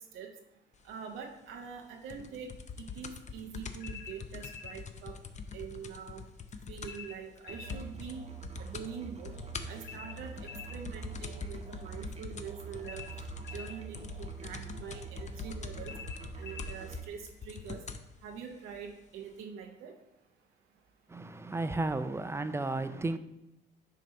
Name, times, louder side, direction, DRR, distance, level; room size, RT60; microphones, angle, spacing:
voice 1, 0.8-2.5 2.8-5.1 5.5-6.2 6.7-8.3 8.6-9.4 9.7-13.0 13.5-15.9 16.4-17.8 18.2-19.9, right 7 dB, 90° right, 0.7 m, -44 dB
sound 1, 2.1-7.1 7.4-7.5 7.7-8.2 8.4-8.9 9.2-18.1 18.9-19.0, left 5 dB, 35° left, 0.5 m, -43 dB
sound 2, 3.8-4.8 6.8-7.8 9.8-10.8 12.8-13.8 15.8-16.8, left 7 dB, 65° left, 0.7 m, -46 dB
Musical instrument, 7.5-17.1, right 6 dB, 30° right, 0.9 m, -45 dB
voice 2, 21.1-23.2, right 2 dB, 15° right, 0.4 m, -33 dB
7.4 x 2.9 x 5.2 m
cardioid pair, 90°, 20 cm